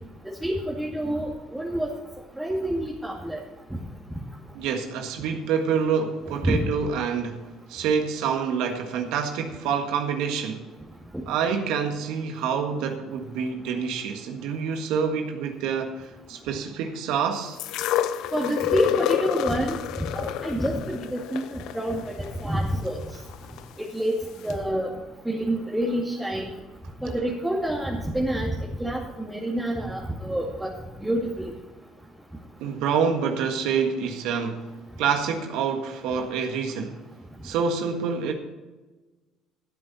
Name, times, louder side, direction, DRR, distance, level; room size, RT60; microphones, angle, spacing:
voice 1, 0.2-1.9 2.4-3.4 6.4-6.6 11.1-11.2 18.3-19.8 20.1-23.0 23.9-24.9 25.3-26.5 27.0-28.5 28.8-30.7 31.0-31.5, right 1 dB, 10° right, 2.3 m, -27 dB
voice 2, 4.5-7.4 7.7-10.7 11.3-17.6 32.6-34.7 35.0-37.0 37.4-38.3, right 6 dB, 70° right, 1.6 m, -27 dB
sound 1, 17.6-23.6 24.5-24.6, left 11 dB, 70° left, 0.6 m, -29 dB
15.0 x 9.0 x 4.2 m
hypercardioid pair, 65°, 0 cm